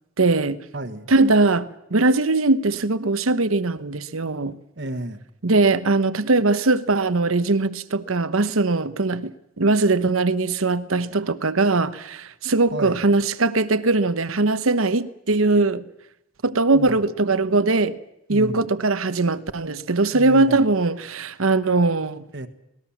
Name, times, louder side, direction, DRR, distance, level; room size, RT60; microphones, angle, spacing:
voice 1, 0.2-0.6 1.1-4.6 5.4-15.8 16.4-17.9 18.3-22.2, right 3 dB, 85° right, 1.0 m, -20 dB
voice 2, 0.7-1.1 4.8-5.2 12.7-13.0 16.7-16.9 18.3-18.6 20.1-20.6 22.3-22.5, right 1 dB, 55° right, 1.4 m, -31 dB
26.0 x 19.5 x 7.3 m
head